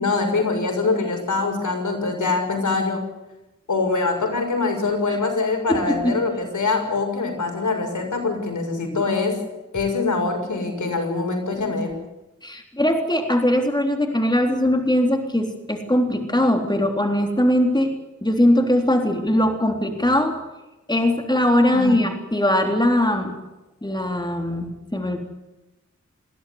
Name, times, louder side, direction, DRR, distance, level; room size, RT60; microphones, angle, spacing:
voice 1, 0.0-3.0 3.7-9.4 9.7-11.9 21.7-22.1, left 3 dB, 80° left, 3 dB, 6.5 m, -24 dB
voice 2, 5.7-6.2 12.4-20.4 20.9-23.4 23.8-25.2, left 1 dB, 15° left, 4 dB, 3.7 m, -21 dB
21.5 x 16.0 x 9.7 m, 1.0 s
wide cardioid pair, 55°, 30 cm